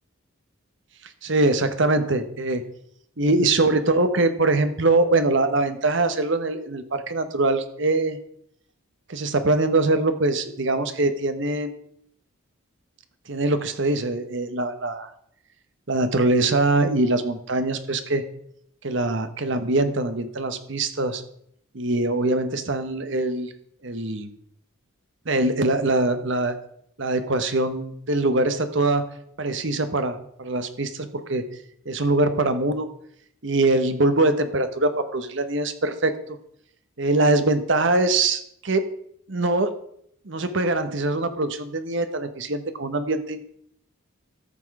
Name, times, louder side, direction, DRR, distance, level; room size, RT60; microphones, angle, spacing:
voice 1, 1.2-2.6 3.2-8.2 9.1-11.8 13.3-15.1 15.9-18.2 18.8-21.2 21.7-23.5 23.8-24.3 25.3-26.6 27.0-29.1 29.4-31.4 31.8-32.9 33.4-36.1 37.0-38.9 39.3-39.7 40.3-43.4, right 2 dB, 55° right, 9 dB, 1.0 m, -23 dB
13.5 x 6.2 x 4.7 m, 0.70 s
head